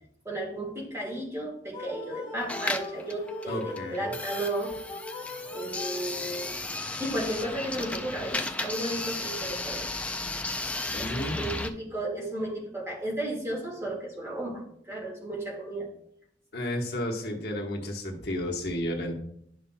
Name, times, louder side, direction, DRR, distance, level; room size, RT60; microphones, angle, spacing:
voice 1, 0.3-4.8 5.5-6.6 7.0-10.2 11.0-15.9, right 1 dB, 15° right, -2 dB, 1.8 m, -34 dB
Win Game, 1.7-6.6, left 2 dB, 30° left, 1.5 m, -40 dB
sound 1, 2.4-11.7, left 2 dB, 10° left, 0.4 m, -34 dB
voice 2, 3.5-4.1 10.9-11.6 16.5-19.2, left 1 dB, 65° left, 0 dB, 1.1 m, -32 dB
11.5 x 5.6 x 2.2 m, 0.72 s
head